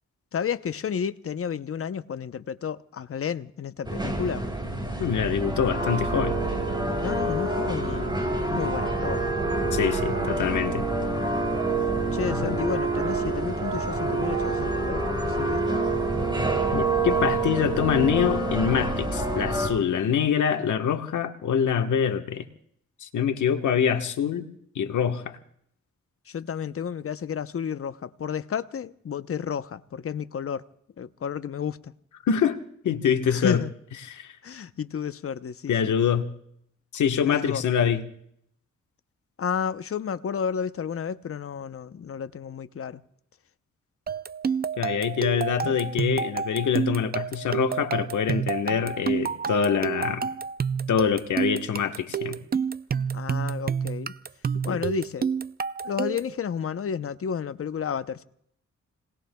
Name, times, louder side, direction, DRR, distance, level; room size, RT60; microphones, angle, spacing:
voice 1, 0.3-4.5 7.0-9.2 12.1-15.8 26.3-30.6 31.0-31.9 33.3-33.7 34.4-35.9 37.2-37.6 39.4-43.0 53.1-54.1 54.6-55.2 55.8-58.2, left 7 dB, 50° left, 0.8 m, -31 dB
sound 1, 3.8-19.7, right 2 dB, 15° right, 4.2 m, -27 dB
voice 2, 5.0-6.4 9.7-10.8 12.3-12.6 16.7-22.4 23.0-24.5 24.7-25.4 32.2-32.6 32.8-33.6 34.0-34.4 35.7-36.3 36.9-38.0 44.8-50.3 50.9-52.4 54.7-54.8, left 7 dB, 85° left, 1.3 m, -25 dB
sound 2, 44.1-56.4, right 6 dB, 35° right, 0.5 m, -29 dB
30.0 x 19.5 x 2.3 m
cardioid pair, 70°, 29 cm